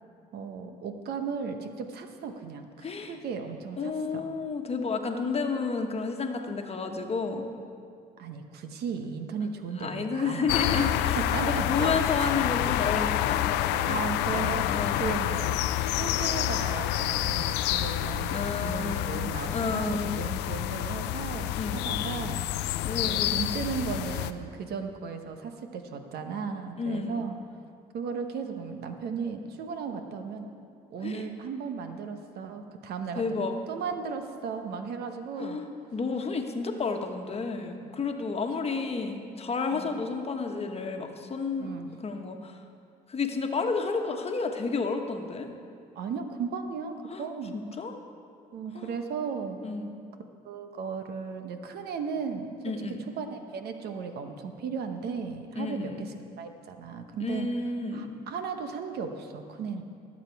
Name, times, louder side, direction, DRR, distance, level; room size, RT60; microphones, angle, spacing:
voice 1, 0.3-4.3 6.3-6.4 8.2-12.3 13.7-15.6 15.9-22.5 23.0-27.4 27.9-30.5 30.9-35.6 37.8-37.9 38.6-38.8 39.7-40.0 41.6-41.9 45.9-47.5 48.5-49.6 50.4-52.7 53.2-56.1 56.4-57.5 57.9-59.8, right 5 dB, 70° right, 6 dB, 1.1 m, -36 dB
voice 2, 2.8-3.1 3.8-7.5 9.8-11.2 11.5-14.0 14.3-15.1 18.3-19.2 19.5-20.2 21.5-21.8 22.8-23.3 26.8-27.3 31.0-31.2 33.1-33.5 35.4-41.7 42.0-42.6 43.1-45.5 47.1-47.3 47.5-48.0 48.7-49.0 49.6-49.9 52.6-53.0 55.5-56.0 57.2-58.2, left 4 dB, 35° left, 4 dB, 1.3 m, -31 dB
sound 1, 10.5-24.3, left 13 dB, 85° left, 0.5 m, -28 dB
19.0 x 7.5 x 4.7 m, 2.4 s
supercardioid pair, 75°, 17 cm